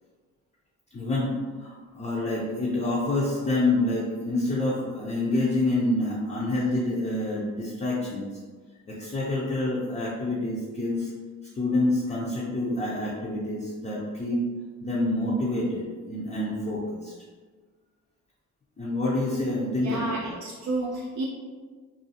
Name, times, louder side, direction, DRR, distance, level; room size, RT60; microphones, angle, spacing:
voice 1, 0.9-8.3 8.9-11.1 11.5-14.4 14.8-17.1 18.8-20.4, left 2 dB, 25° left, -5 dB, 0.4 m, -27 dB
voice 2, 19.7-21.3, right 2 dB, 70° right, -3 dB, 0.4 m, -31 dB
2.5 x 2.3 x 2.7 m, 1.5 s
cardioid pair, 90°, 30 cm